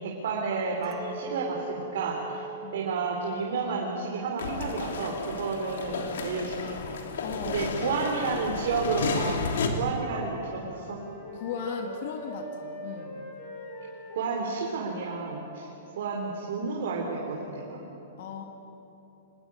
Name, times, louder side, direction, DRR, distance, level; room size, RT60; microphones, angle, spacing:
voice 1, 0.0-2.5 2.7-6.8 7.4-11.0 14.1-15.7 15.9-17.8, right 4 dB, 60° right, -1 dB, 3.7 m, -31 dB
Chink clink, 0.8-5.2 5.6-6.2, right 3 dB, 5° right, 1.5 m, -44 dB
sound 1, 4.4-9.7, left 5 dB, 75° left, 3.1 m, -33 dB
voice 2, 7.2-8.0 11.3-13.2 18.2-18.4, left 5 dB, 45° left, 3 dB, 2.2 m, -36 dB
Wind instrument woodwind instrument, 9.9-15.5, equal, 25° left, 7.7 m, -43 dB
25.5 x 20.5 x 9.0 m, 3.0 s
hypercardioid pair, 175°, 0 cm